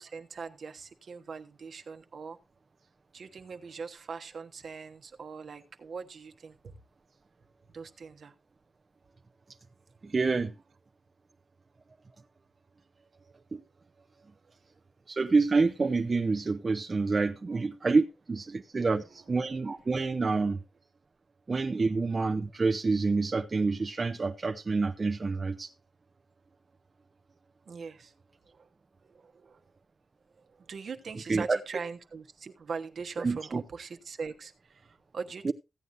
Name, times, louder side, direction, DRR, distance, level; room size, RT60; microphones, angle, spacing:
voice 1, 0.0-2.4 3.1-6.8 7.7-8.3 17.5-17.6 27.7-28.1 28.5-28.7 29.0-29.6 30.3-35.5, right 5 dB, 70° right, 1.1 m, -41 dB
voice 2, 10.0-10.5 13.5-13.6 15.1-20.6 21.5-25.7 31.3-31.6 33.2-33.6 35.4-35.5, right 4 dB, 40° right, 0.7 m, -27 dB
15.5 x 9.1 x 2.6 m
cardioid pair, 85°, 0 cm